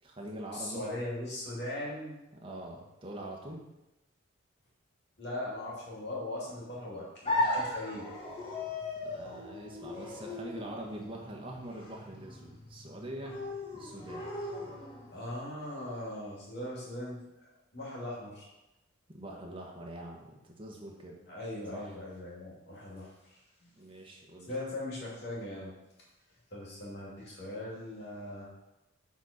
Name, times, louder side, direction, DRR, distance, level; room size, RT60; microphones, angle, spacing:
voice 1, 0.0-0.8 2.4-3.6 9.0-13.4 13.7-14.3 19.1-21.1 21.7-22.0 23.7-24.5, right 1 dB, 25° right, -1 dB, 1.3 m, -44 dB
voice 2, 0.5-2.2 5.2-8.1 15.1-17.2 17.7-18.5 21.2-23.8 24.5-25.7 26.5-28.5, left 1 dB, 55° left, -5 dB, 2.5 m, -40 dB
sound 1, 7.2-15.2, left 2 dB, 30° left, 1.7 m, -37 dB
7.2 x 4.2 x 5.1 m, 0.97 s
head